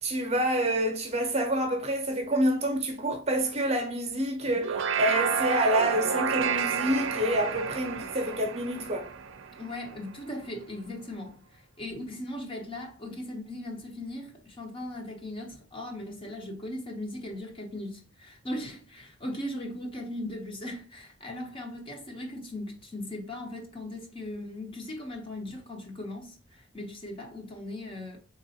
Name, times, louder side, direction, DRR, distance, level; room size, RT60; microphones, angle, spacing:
voice 1, 0.0-9.1, right 1 dB, 30° right, 0.7 m, -27 dB
sound 1, 4.5-10.0, right 6 dB, 70° right, 0.5 m, -30 dB
voice 2, 9.5-28.2, left 1 dB, 25° left, 0.7 m, -38 dB
3.5 x 3.0 x 2.7 m
head